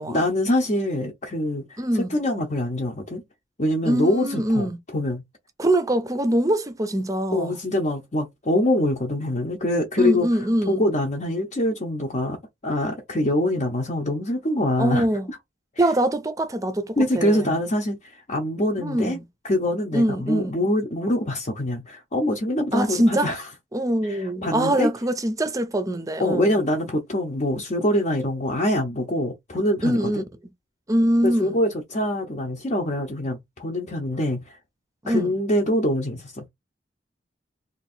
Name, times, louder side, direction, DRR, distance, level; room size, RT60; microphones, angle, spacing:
voice 1, 0.1-3.2 3.6-5.2 7.3-10.3 10.7-12.4 12.6-15.4 15.7-15.9 17.0-19.2 19.4-23.5 24.0-24.9 26.2-30.2 31.2-34.6 35.1-36.5, left 1 dB, 40° left, 0.8 m, -24 dB
voice 2, 1.8-2.2 3.8-4.8 5.6-7.6 10.0-10.8 14.8-15.3 15.8-17.6 18.8-19.2 19.9-20.5 22.7-23.3 23.7-26.6 29.8-30.2 30.9-31.5 35.0-35.3, right 1 dB, 20° right, 0.6 m, -23 dB
2.9 x 2.5 x 4.2 m
head